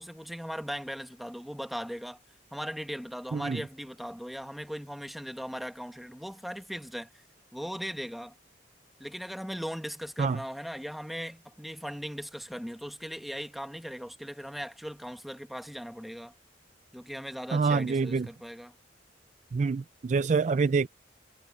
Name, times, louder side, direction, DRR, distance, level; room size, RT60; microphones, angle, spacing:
voice 1, 0.0-2.2 2.5-7.2 7.5-8.3 9.0-16.3 16.9-18.7, equal, ahead, 1.3 m, -38 dB
voice 2, 17.5-18.3 19.5-20.9, right 4 dB, 40° right, 0.3 m, -26 dB
head